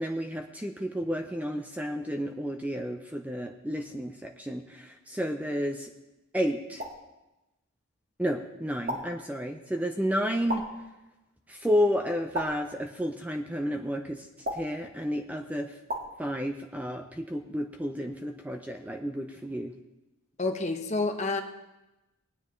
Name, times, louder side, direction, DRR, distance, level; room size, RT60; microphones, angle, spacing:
voice 1, 0.0-5.9 6.3-6.8 8.2-10.7 11.5-14.3 14.5-15.8 16.2-19.7, equal, 5° right, 4 dB, 0.5 m, -31 dB
sound 1, 6.8-7.1 8.9-9.3 10.5-10.9 12.3-12.8 14.5-14.9 15.9-16.2, equal, 45° right, 1.8 m, -35 dB
voice 2, 20.4-21.4, left 3 dB, 30° left, 6 dB, 1.0 m, -28 dB
19.0 x 9.7 x 3.2 m, 0.99 s
head